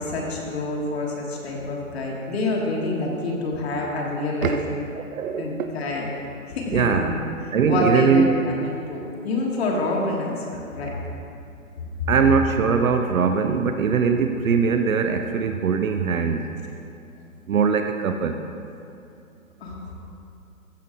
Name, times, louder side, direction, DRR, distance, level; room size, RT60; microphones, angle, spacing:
voice 1, 0.0-4.5 5.4-6.1 6.5-7.1 7.6-11.0 12.0-12.1 19.6-19.9, left 2 dB, 45° left, -2 dB, 1.5 m, -27 dB
voice 2, 4.9-5.7 6.7-7.1 7.5-8.4 12.1-16.5 17.5-18.4, right 6 dB, 70° right, 6 dB, 0.7 m, -21 dB
14.5 x 5.2 x 3.7 m, 2.6 s
hypercardioid pair, 150°, 43 cm